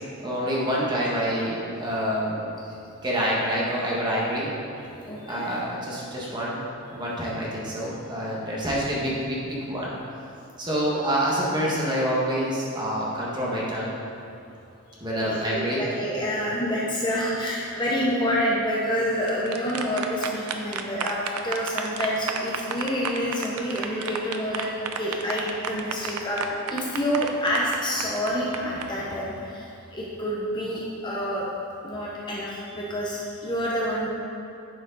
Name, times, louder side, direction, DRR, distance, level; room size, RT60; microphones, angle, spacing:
voice 1, 0.2-2.4 3.0-4.5 5.3-6.6 6.9-9.9 10.6-13.9 15.0-15.8, equal, 20° right, -6 dB, 1.5 m, -27 dB
voice 2, 5.1-5.5 15.2-24.7 24.9-31.5 31.8-34.1, equal, 20° left, -5 dB, 0.8 m, -28 dB
sound 1, 19.1-28.8, right 6 dB, 85° right, 0.6 m, -32 dB
10.0 x 5.0 x 4.0 m, 2.7 s
head